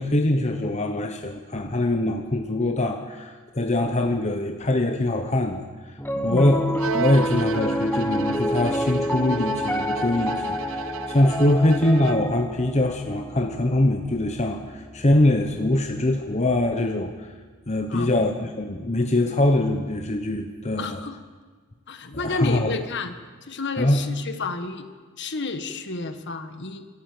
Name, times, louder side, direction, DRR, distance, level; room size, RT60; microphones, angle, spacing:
voice 1, 0.0-5.6 6.2-17.3 17.7-21.0 22.1-22.7 23.8-24.0, left 1 dB, 30° left, 4 dB, 1.1 m, -23 dB
Piano, 6.0-16.3, equal, 10° left, 1.1 m, -29 dB
voice 2, 6.1-6.6 17.9-18.1 20.8-21.2 21.9-23.1 23.4-24.9 25.2-26.9, left 3 dB, 55° left, 8 dB, 1.6 m, -31 dB
Bowed string instrument, 6.8-12.5, right 8 dB, 65° right, 0.5 m, -34 dB
26.5 x 13.0 x 7.9 m, 1.5 s
head